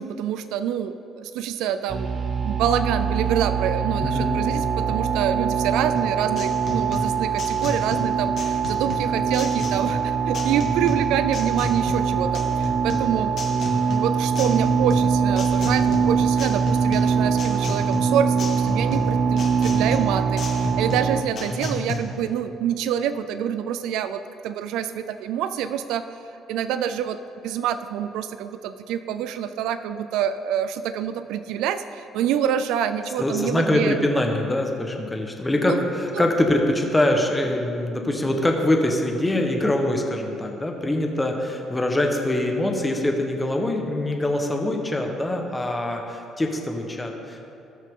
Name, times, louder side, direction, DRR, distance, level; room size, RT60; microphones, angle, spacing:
voice 1, 0.0-13.3 13.8-26.0 26.5-27.2 27.4-34.2 35.7-35.8 36.1-36.2, right 9 dB, 85° right, 11 dB, 0.4 m, -26 dB
sound 1, 1.9-21.2, right 6 dB, 35° right, 0.6 m, -23 dB
voice 2, 4.0-4.4 21.5-21.9 33.2-47.5, left 1 dB, 10° left, 2 dB, 1.1 m, -24 dB
sound 2, 6.0-22.0, left 2 dB, 45° left, 1.7 m, -33 dB
18.5 x 6.3 x 3.7 m, 2.7 s
cardioid pair, 140°, 0 cm